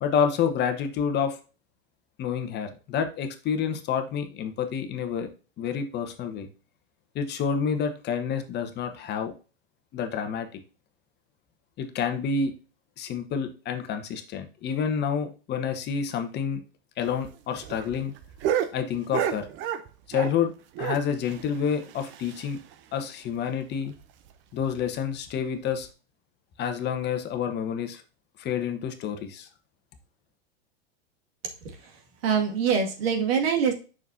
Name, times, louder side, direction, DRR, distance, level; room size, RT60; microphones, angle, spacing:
voice 1, 0.0-1.4 2.2-5.3 5.6-6.5 7.1-9.3 9.9-10.5 11.8-12.5 13.0-16.6 17.0-18.1 18.7-19.5 20.1-20.5 20.8-22.6 22.9-23.9 24.5-25.9 26.6-28.0 28.4-29.5, left 7 dB, 35° left, 7 dB, 1.2 m, -28 dB
sound 1, 17.0-20.5 20.7-22.7 23.0-23.1 23.4-23.5 23.9-24.0 24.6-24.9 25.7-25.8, right 9 dB, 40° right, 0.9 m, -32 dB
voice 2, 32.2-33.7, right 6 dB, 70° right, 4 dB, 2.1 m, -24 dB
7.1 x 6.1 x 2.7 m, 0.34 s
hypercardioid pair, 100°, 31 cm